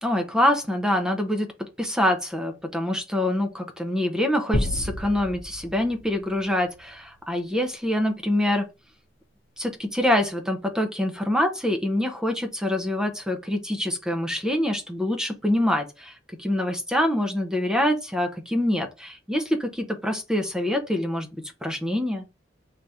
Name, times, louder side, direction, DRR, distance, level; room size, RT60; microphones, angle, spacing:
voice 1, 0.0-1.5 1.8-8.7 9.6-16.1 16.4-21.3 21.6-22.2, left 1 dB, 5° right, 0.5 m, -25 dB
sound 1, 4.5-7.1, left 1 dB, 80° left, 0.8 m, -31 dB
3.3 x 2.4 x 4.1 m
head